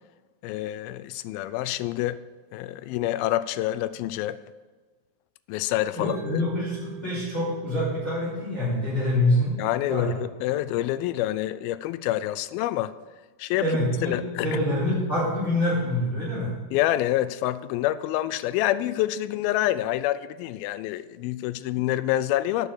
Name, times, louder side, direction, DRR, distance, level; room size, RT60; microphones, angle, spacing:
voice 1, 0.4-2.2 2.5-4.4 5.5-6.4 9.6-12.9 13.4-13.7 14.0-14.6 16.7-22.7, left 14 dB, 85° left, 14 dB, 2.4 m, -27 dB
voice 2, 5.9-9.5 9.9-10.1 13.6-16.5, left 1 dB, 20° left, -10 dB, 4.5 m, -26 dB
Mallet percussion, 6.1-10.2, right 8 dB, 45° right, 4.9 m, -45 dB
12.0 x 6.7 x 6.4 m, 1.4 s
omnidirectional pair, 4.2 m